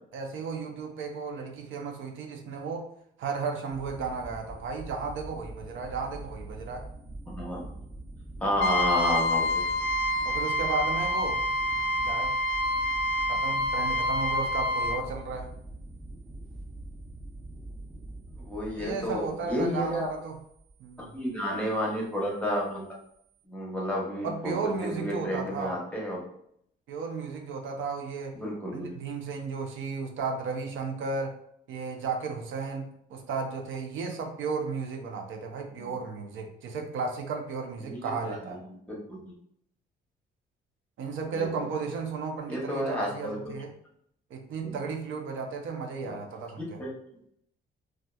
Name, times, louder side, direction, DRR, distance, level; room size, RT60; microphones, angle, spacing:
voice 1, 0.1-2.9 3.2-6.9 10.2-11.4 12.0-12.4 13.3-15.5 18.8-20.4 20.8-21.1 24.2-25.8 26.9-28.4 28.7-31.4 31.7-38.6 41.0-43.7 44.3-46.8, right 4 dB, 80° right, 2 dB, 0.6 m, -34 dB
sound 1, 3.7-23.4, right 2 dB, 20° right, 0.7 m, -44 dB
voice 2, 7.3-7.7 8.4-9.5 18.4-20.1 21.1-22.9 23.5-26.2 28.3-28.9 35.7-35.9 37.8-38.3 38.9-39.3 41.3-41.5 42.5-43.5 44.6-44.8 46.0-46.1 46.6-46.9, left 1 dB, 5° left, -3 dB, 0.9 m, -31 dB
Trumpet, 8.6-15.0, left 1 dB, 60° left, 0.4 m, -27 dB
2.7 x 2.3 x 2.3 m, 0.71 s
cardioid pair, 90°, 20 cm